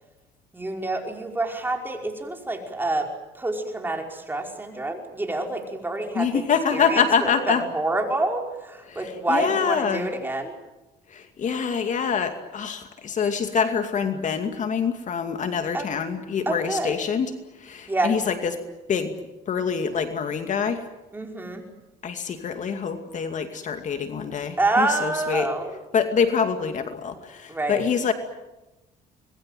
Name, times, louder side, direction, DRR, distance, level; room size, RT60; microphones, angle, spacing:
voice 1, 0.5-6.5 6.7-10.6 15.7-15.9 16.5-17.0 17.9-18.1 21.1-21.6 24.6-25.7 27.5-27.9, right 2 dB, 10° right, 2 dB, 5.2 m, -27 dB
voice 2, 6.1-7.6 8.9-10.1 11.1-18.6 18.9-19.2 19.5-20.9 22.0-25.5 25.9-28.1, left 6 dB, 45° left, 7 dB, 2.5 m, -25 dB
26.0 x 21.5 x 9.2 m, 1.0 s
cardioid pair, 110°, 17 cm